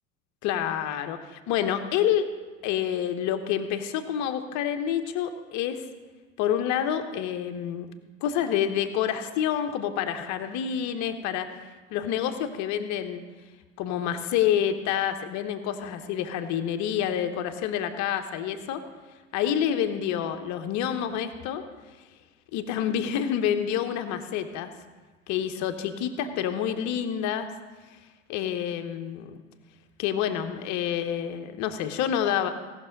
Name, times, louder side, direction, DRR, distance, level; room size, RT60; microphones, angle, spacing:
voice 1, 0.4-2.3 2.6-5.8 6.4-7.9 8.2-11.5 11.9-13.2 13.8-18.8 19.3-21.6 22.5-24.7 25.3-27.5 28.3-29.4 30.0-32.5, left 9 dB, 45° left, 8 dB, 1.1 m, -28 dB
17.0 x 6.4 x 5.2 m, 1.3 s
figure-of-eight pair, 70°, 39 cm